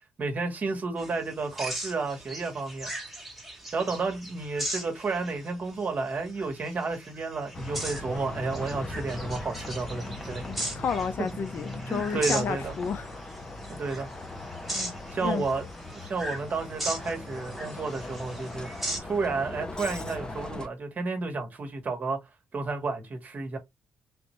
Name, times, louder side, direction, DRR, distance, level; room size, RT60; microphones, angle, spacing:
voice 1, 0.2-2.9 3.7-10.4 11.9-12.7 13.7-14.1 15.1-15.6 15.9-18.7 19.0-22.2 22.5-23.6, right 3 dB, 45° right, 1.2 m, -31 dB
sound 1, 1.0-19.0, right 1 dB, ahead, 1.2 m, -38 dB
Bus, 7.5-20.7, left 1 dB, 20° left, 0.8 m, -39 dB
voice 2, 10.5-13.1 14.7-14.9 15.2-15.5, left 6 dB, 60° left, 0.5 m, -31 dB
3.4 x 2.5 x 3.0 m
cardioid pair, 110°, 4 cm